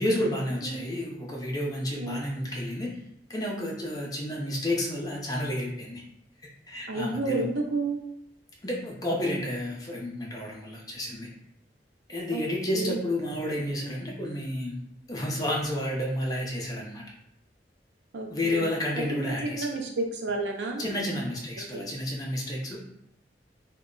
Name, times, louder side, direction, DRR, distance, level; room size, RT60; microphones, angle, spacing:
voice 1, 0.0-2.9 3.3-6.0 6.7-7.4 8.6-11.3 12.1-14.8 15.1-17.0 18.3-19.7 20.8-22.8, left 1 dB, 20° left, -2 dB, 0.5 m, -31 dB
voice 2, 6.9-8.0 12.3-12.4 12.7-13.0 18.1-18.7 19.1-20.9 21.6-21.9, right 3 dB, 90° right, 2 dB, 0.5 m, -31 dB
2.2 x 2.0 x 3.7 m, 0.76 s
head